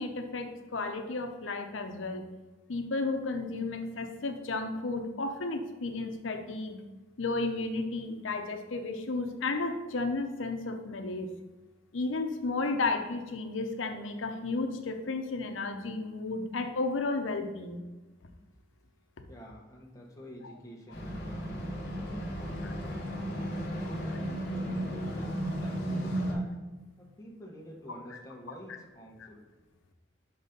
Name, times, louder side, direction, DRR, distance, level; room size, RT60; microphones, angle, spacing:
voice 1, 0.0-2.2 2.7-6.8 7.2-11.3 11.9-17.8 20.4-20.5 22.6-22.7, left 3 dB, 90° left, 6 dB, 0.8 m, -33 dB
voice 2, 19.3-22.8 23.6-26.6 27.0-29.4, equal, 15° left, -2 dB, 1.1 m, -48 dB
sound 1, 20.9-26.3, equal, 55° left, 1.4 m, -34 dB
5.7 x 4.1 x 5.1 m, 1.2 s
head